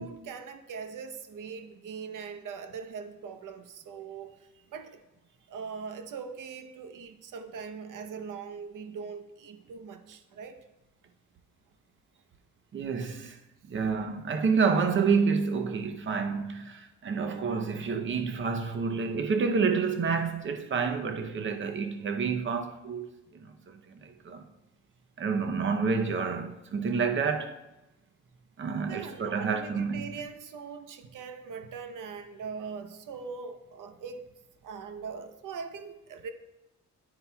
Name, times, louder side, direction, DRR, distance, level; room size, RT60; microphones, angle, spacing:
voice 1, 0.0-5.0 5.5-10.6 28.9-34.3 34.6-36.3, right 5 dB, 85° right, 0.9 m, -41 dB
voice 2, 12.7-13.4 13.6-24.4 25.2-27.6 28.6-30.1, right 5 dB, 40° right, 0.7 m, -29 dB
9.8 x 9.7 x 2.3 m
wide cardioid pair, 165°, 31 cm